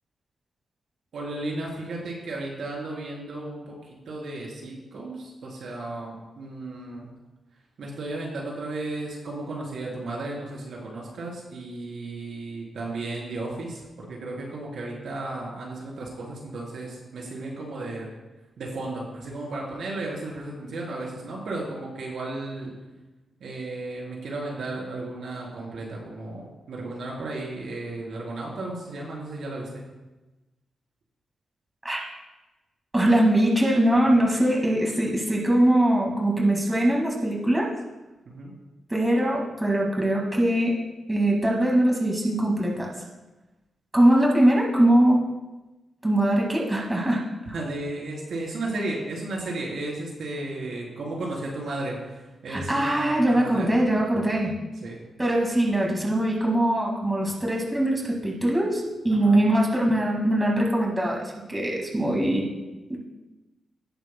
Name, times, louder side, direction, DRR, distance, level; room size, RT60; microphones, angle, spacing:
voice 1, 1.1-7.1 7.8-18.1 18.6-22.7 23.4-29.8 38.3-38.5 47.5-53.7 54.8-55.0 59.1-59.4, right 2 dB, 70° right, -2 dB, 3.6 m, -34 dB
voice 2, 32.9-37.7 38.9-40.7 41.1-42.9 43.9-45.3 46.0-47.2 52.5-54.5 55.2-62.5 62.9-63.0, right 1 dB, 15° right, -2 dB, 2.0 m, -22 dB
17.5 x 8.5 x 2.2 m, 1.1 s
cardioid pair, 105°, 0 cm